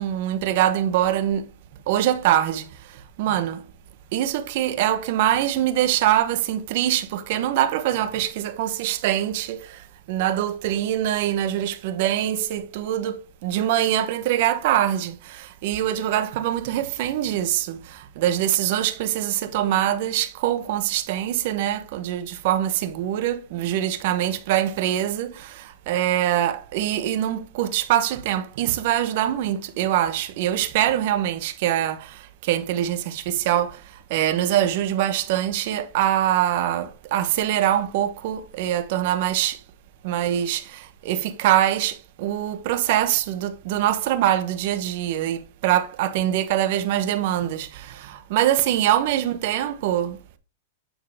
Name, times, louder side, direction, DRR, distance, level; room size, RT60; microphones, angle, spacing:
voice 1, 0.0-1.4 1.9-2.6 3.2-3.6 4.1-9.8 10.1-33.8 34.1-39.6 40.0-50.2, right 12 dB, 55° right, 1.0 m, -23 dB
8.9 x 4.6 x 3.5 m
hypercardioid pair, 135°, 0 cm